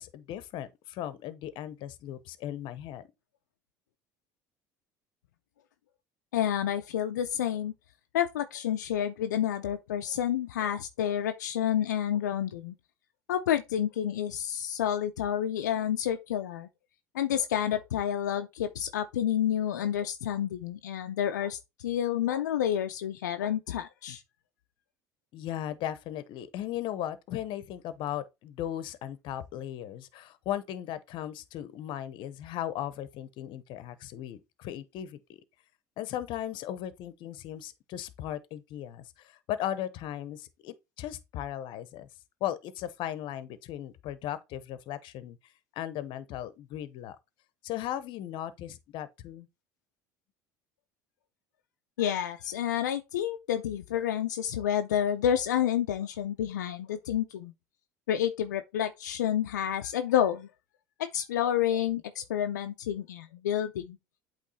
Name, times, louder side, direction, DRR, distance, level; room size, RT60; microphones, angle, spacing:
voice 1, 0.0-3.0 25.3-35.4 36.0-42.1 42.4-45.4 45.7-47.2 47.6-49.5, left 11 dB, 60° left, 0.9 m, -37 dB
voice 2, 6.3-7.7 8.1-12.7 13.3-16.7 17.1-21.6 21.8-24.2 52.0-57.5 58.1-60.5 61.0-64.0, left 10 dB, 90° left, 0.6 m, -29 dB
8.3 x 3.2 x 4.2 m
hypercardioid pair, 75°, 9 cm